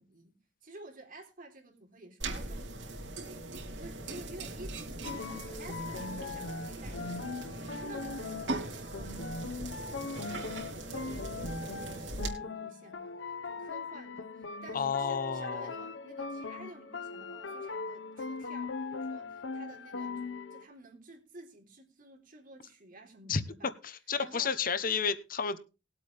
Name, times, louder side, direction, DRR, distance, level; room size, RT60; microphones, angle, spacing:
voice 1, 0.0-3.4 3.8-23.7 24.2-24.5, right 2 dB, 50° right, 3.8 m, -52 dB
sound 1, 2.2-12.3, right 2 dB, 80° right, 3.3 m, -40 dB
sound 2, 5.0-20.6, left 4 dB, 90° left, 0.9 m, -40 dB
voice 2, 14.7-15.7 23.3-23.4 23.8-25.6, left 6 dB, 50° left, 0.9 m, -31 dB
20.0 x 8.3 x 3.4 m
head